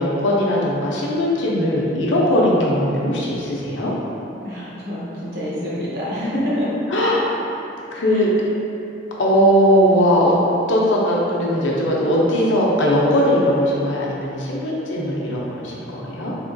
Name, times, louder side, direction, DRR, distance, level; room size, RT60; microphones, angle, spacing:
voice 1, 0.0-3.9 6.9-7.2 7.9-8.3 9.2-10.4 10.7-16.3, equal, 85° left, -4 dB, 0.6 m, -19 dB
voice 2, 4.4-6.8 8.1-8.2, equal, 55° right, -8 dB, 0.9 m, -26 dB
3.5 x 2.9 x 2.7 m, 2.7 s
head